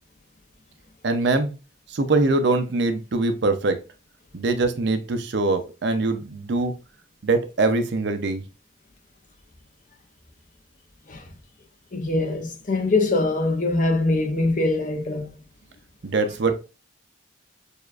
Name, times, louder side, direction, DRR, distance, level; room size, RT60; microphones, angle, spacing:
voice 1, 1.0-1.5 1.9-3.8 4.3-6.7 7.2-8.4 16.0-16.6, right 3 dB, 60° right, 0.5 m, -23 dB
voice 2, 11.9-15.3, left 2 dB, 40° left, 0.7 m, -23 dB
6.5 x 2.4 x 2.4 m
head